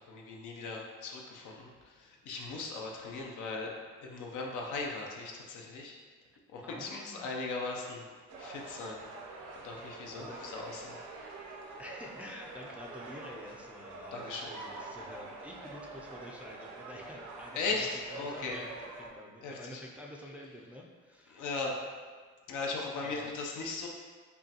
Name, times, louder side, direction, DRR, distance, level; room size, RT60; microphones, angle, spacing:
voice 1, 0.1-3.7 4.0-6.0 6.5-8.0 8.4-9.0 9.6-11.0 14.1-14.5 17.5-18.6 19.4-19.8 21.3-21.8 22.5-23.9, left 3 dB, 80° left, 0 dB, 0.7 m, -38 dB
voice 2, 6.6-7.3 9.6-10.4 11.8-21.4 23.0-23.3, left 1 dB, 5° right, -2 dB, 0.4 m, -48 dB
sound 1, 8.3-19.1, right 3 dB, 75° right, 0.7 m, -46 dB
5.3 x 2.2 x 2.9 m, 1.6 s
cardioid pair, 90°, 30 cm